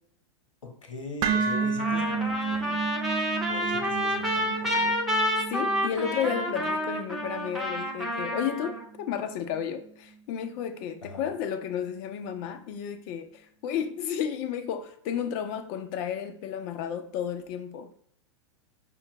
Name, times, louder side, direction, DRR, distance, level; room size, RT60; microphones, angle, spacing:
voice 1, 0.6-2.9 3.5-5.0 11.0-11.3, left 2 dB, 80° left, 3 dB, 1.0 m, -40 dB
sound 1, 1.2-9.3, right 5 dB, 35° right, 0.4 m, -33 dB
Trumpet, 1.8-8.8, equal, ahead, 0.8 m, -29 dB
voice 2, 5.5-17.9, left 8 dB, 40° left, 9 dB, 0.5 m, -32 dB
5.6 x 2.2 x 2.9 m, 0.66 s
hypercardioid pair, 105°, 16 cm